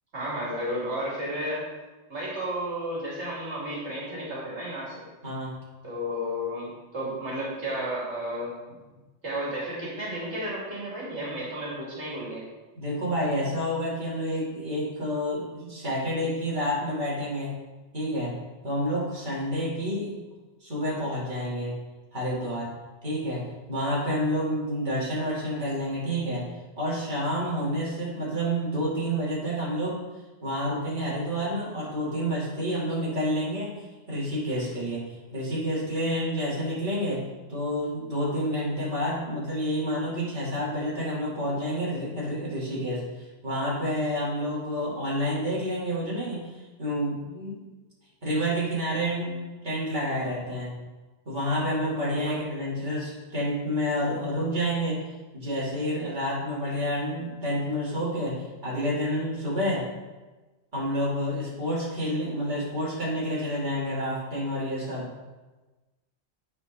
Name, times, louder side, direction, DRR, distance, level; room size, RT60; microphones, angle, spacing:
voice 1, 0.1-1.6 2.1-5.0 5.8-8.5 9.2-12.4 52.3-52.4, equal, 75° right, -6 dB, 2.7 m, -32 dB
voice 2, 5.2-5.6 12.7-17.5 17.9-18.4 18.6-20.1 20.6-21.7 22.1-22.7 23.0-26.5 26.8-30.0 30.4-33.7 34.1-47.6 48.2-50.7 51.3-55.0 55.3-59.9 60.7-65.1, equal, 40° right, -8 dB, 2.7 m, -29 dB
9.1 x 4.8 x 5.3 m, 1.2 s
omnidirectional pair, 1.2 m